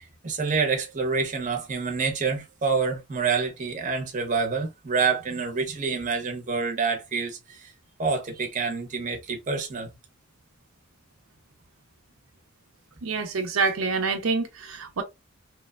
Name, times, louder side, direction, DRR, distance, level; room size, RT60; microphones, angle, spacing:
voice 1, 0.0-7.7 8.0-9.9, right 5 dB, 35° right, 0.7 m, -27 dB
voice 2, 13.0-15.0, right 4 dB, 85° right, 0.6 m, -26 dB
2.9 x 2.1 x 2.2 m
head